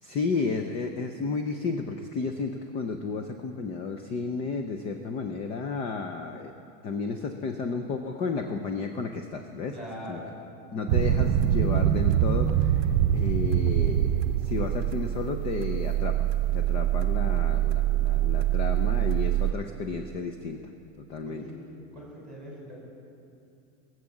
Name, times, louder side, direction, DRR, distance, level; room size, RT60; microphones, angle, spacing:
voice 1, 0.0-6.5 6.8-9.8 10.1-10.2 10.7-16.3 16.5-20.6 21.0-21.5, left 4 dB, 20° left, 6 dB, 0.3 m, -32 dB
voice 2, 9.7-10.3 21.2-21.6 21.9-22.7, equal, ahead, -4 dB, 4.6 m, -41 dB
sound 1, 10.9-19.5, right 11 dB, 55° right, 0.7 m, -24 dB
20.5 x 7.7 x 7.1 m, 2.7 s
supercardioid pair, 160°, 36 cm